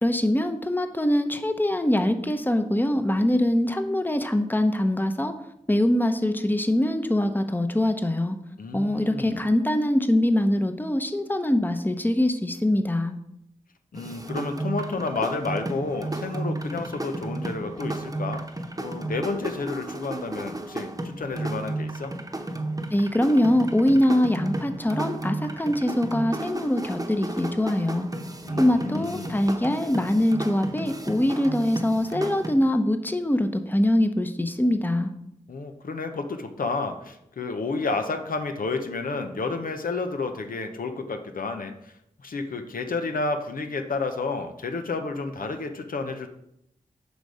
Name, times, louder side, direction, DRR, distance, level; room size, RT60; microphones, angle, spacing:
voice 1, 0.0-5.3 5.7-8.4 8.7-13.1 22.9-28.1 28.6-35.1, left 1 dB, 15° left, 7 dB, 0.8 m, -23 dB
voice 2, 8.6-9.5 13.9-18.4 18.8-22.1 28.4-29.4 35.5-41.9 42.2-46.3, left 3 dB, 80° left, 6 dB, 0.8 m, -31 dB
sound 1, 13.9-32.5, right 2 dB, 25° right, 1.0 m, -33 dB
8.2 x 5.3 x 4.9 m, 0.79 s
cardioid pair, 50°, 14 cm